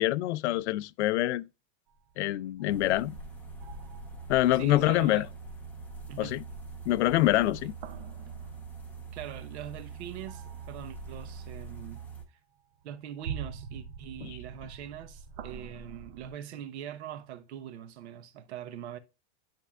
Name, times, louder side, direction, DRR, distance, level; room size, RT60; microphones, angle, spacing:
voice 1, 0.0-1.4 2.2-3.2 4.3-5.3 6.2-6.4 6.9-7.7 14.2-14.4, left 15 dB, 80° left, 0.5 m, -25 dB
sound 1, 1.9-3.2 3.6-4.4 7.5-9.5 10.3-11.3 12.0-12.1 12.7-16.3, right 7 dB, 40° right, 0.7 m, -44 dB
sound 2, 2.7-12.2, right 4 dB, 5° left, 0.8 m, -43 dB
voice 2, 4.5-5.3 6.1-6.4 9.1-12.1 12.8-19.0, right 10 dB, 80° right, 1.0 m, -42 dB
10.5 x 4.4 x 2.4 m
supercardioid pair, 175°, 33 cm